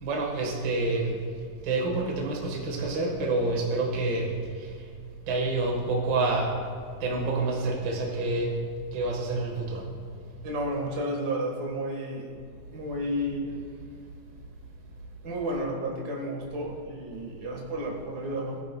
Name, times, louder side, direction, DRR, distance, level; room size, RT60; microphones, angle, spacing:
voice 1, 0.0-1.2 1.6-4.3 5.3-6.5 7.0-8.5 8.9-9.8, right 2 dB, 65° right, 0 dB, 1.1 m, -27 dB
voice 2, 10.4-12.3 12.7-13.5 15.2-18.6, equal, 85° right, -1 dB, 0.8 m, -32 dB
17.5 x 10.5 x 2.2 m, 2.2 s
omnidirectional pair, 4.2 m